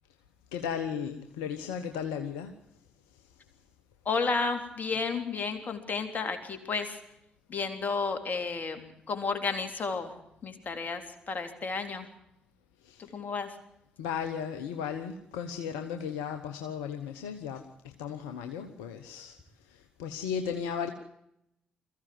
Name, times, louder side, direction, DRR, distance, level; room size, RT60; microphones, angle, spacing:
voice 1, 0.5-2.5 3.1-3.4 12.8-13.1 14.0-20.9, left 7 dB, 80° left, 6 dB, 1.1 m, -36 dB
voice 2, 4.1-7.0 7.5-10.1 10.4-12.1 13.0-13.5, left 4 dB, 45° left, 6 dB, 3.5 m, -32 dB
22.0 x 15.0 x 7.8 m, 0.80 s
hypercardioid pair, 45°, 4 cm